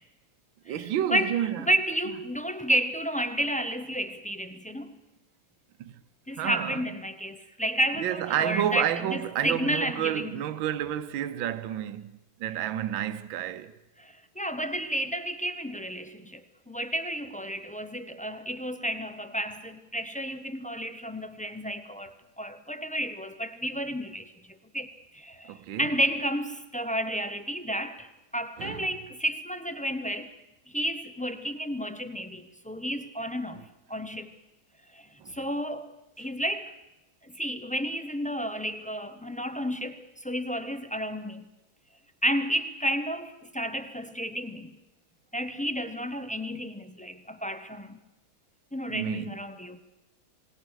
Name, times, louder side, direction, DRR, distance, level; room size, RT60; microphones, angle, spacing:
voice 1, 0.7-1.6 5.8-5.9 6.4-6.8 8.0-13.7 25.5-25.9 28.6-28.9 35.2-35.4 48.9-49.4, right 11 dB, 75° right, 1.7 m, -30 dB
voice 2, 1.6-4.9 6.3-10.3 14.0-30.4 30.7-34.4 34.9-35.9 36.2-36.7 37.2-41.4 42.2-44.8 45.3-48.0 48.7-49.8, equal, 10° left, 0.4 m, -31 dB
28.0 x 19.5 x 6.4 m
omnidirectional pair, 2.2 m